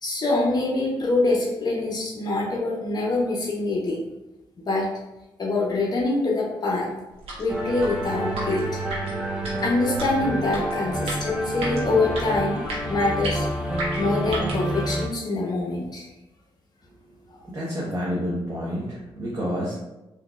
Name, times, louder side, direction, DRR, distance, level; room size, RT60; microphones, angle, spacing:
voice 1, 0.0-4.0 4.6-4.9 5.4-6.9 7.4-8.8 9.6-13.5 14.0-16.1, left 2 dB, 45° left, -3 dB, 0.8 m, -25 dB
sound 1, 7.1-14.7, right 1 dB, 85° right, 1.0 m, -36 dB
sound 2, 7.5-15.1, right 1 dB, 10° right, 0.7 m, -28 dB
voice 2, 17.5-19.7, equal, 30° right, -7 dB, 1.1 m, -29 dB
3.7 x 2.9 x 2.4 m, 0.98 s
cardioid pair, 75°, 10 cm